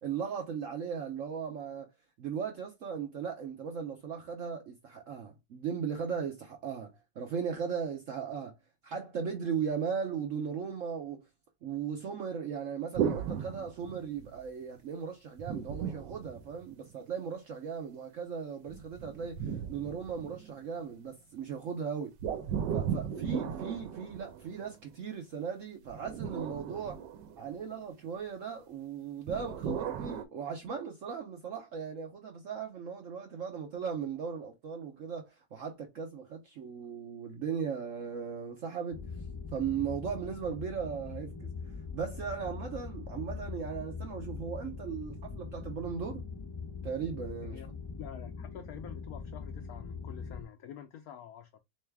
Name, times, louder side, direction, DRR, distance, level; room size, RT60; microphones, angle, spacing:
voice 1, 0.0-1.9 2.2-8.6 8.8-11.3 11.6-22.1 22.7-27.0 27.4-39.0 39.5-41.5 41.9-46.2 46.8-47.6, right 7 dB, 60° right, 0.8 m, -37 dB
sound 1, 12.9-14.4 15.4-17.0 18.7-20.7 22.2-24.8 25.9-27.8 29.3-30.2, right 8 dB, 85° right, 1.3 m, -36 dB
sound 2, 38.9-50.4, left 5 dB, 25° left, 0.5 m, -42 dB
voice 2, 48.0-51.6, left 10 dB, 70° left, 0.9 m, -48 dB
3.4 x 3.1 x 3.3 m
omnidirectional pair, 1.9 m